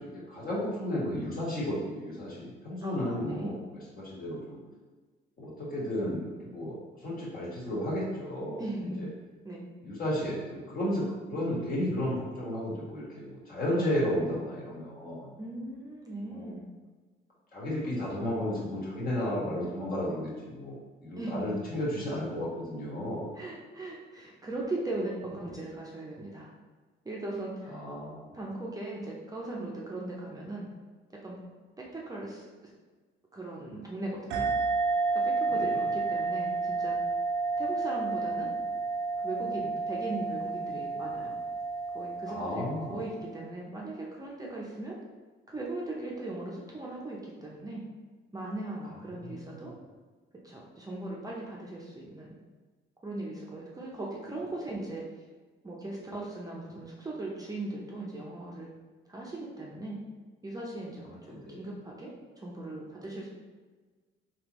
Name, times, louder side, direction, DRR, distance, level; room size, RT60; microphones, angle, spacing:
voice 1, 0.0-4.6 5.4-9.1 9.8-15.3 16.3-16.5 17.5-20.8 21.0-23.3 27.6-28.3 35.5-35.7 42.3-43.1 49.2-49.7 61.1-61.6, equal, 45° left, -6 dB, 1.5 m, -33 dB
voice 2, 2.8-3.6 8.6-9.1 9.4-9.7 15.4-16.6 21.2-21.7 23.4-26.5 27.0-27.8 28.3-30.7 31.1-31.4 31.8-32.7 33.3-34.5 35.1-37.0 37.6-38.5 39.2-41.4 41.9-45.0 45.5-47.8 48.3-49.7 50.4-52.4 53.0-55.1 55.6-58.7 59.1-60.0 60.4-63.3, right 2 dB, 20° right, -3 dB, 0.6 m, -38 dB
sound 1, 34.3-43.4, right 3 dB, 80° right, 0.5 m, -31 dB
3.5 x 2.9 x 3.0 m, 1.4 s
cardioid pair, 90°, 20 cm